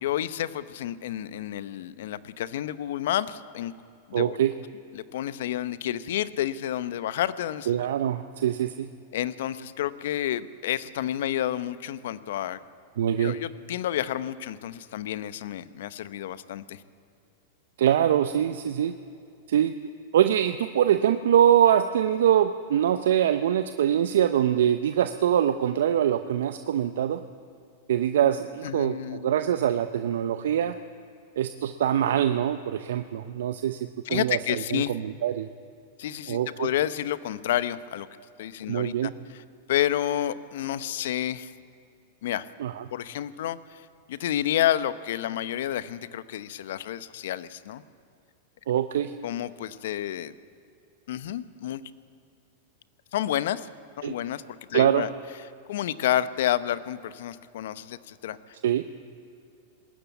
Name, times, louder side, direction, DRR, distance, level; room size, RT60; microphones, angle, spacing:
voice 1, 0.0-3.7 4.1-4.4 4.9-7.8 9.1-12.6 13.2-16.8 28.6-29.3 34.0-34.9 36.0-38.1 38.4-39.4 39.7-41.5 42.2-42.5 42.9-47.8 49.2-50.3 51.1-51.8 53.1-53.7 54.0-54.4 54.7-55.1 55.7-58.6, left 12 dB, 65° left, 14 dB, 0.9 m, -30 dB
voice 2, 4.1-4.5 7.7-8.9 13.0-13.4 17.8-18.9 19.5-19.7 20.1-27.2 27.9-30.8 31.4-35.5 36.3-36.7 38.7-39.1 42.6-42.8 48.7-49.1 54.0-54.2 54.7-55.1 58.6-58.8, right 10 dB, 70° right, 9 dB, 0.7 m, -24 dB
20.0 x 15.0 x 9.3 m, 2.6 s
hypercardioid pair, 100°, 0 cm